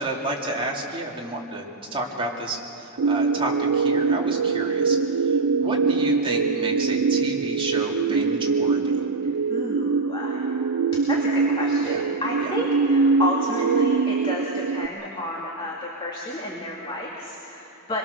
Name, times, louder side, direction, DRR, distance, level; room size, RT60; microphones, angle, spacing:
voice 1, 0.0-1.6 1.9-9.0 11.8-12.0 12.4-12.5, right 1 dB, 25° right, -2 dB, 2.8 m, -31 dB
sound 1, 3.0-14.9, right 4 dB, 80° right, 0.5 m, -23 dB
voice 2, 9.5-10.4 11.1-18.0, left 1 dB, 25° left, -3 dB, 2.3 m, -31 dB
25.0 x 22.0 x 6.7 m, 2.9 s
head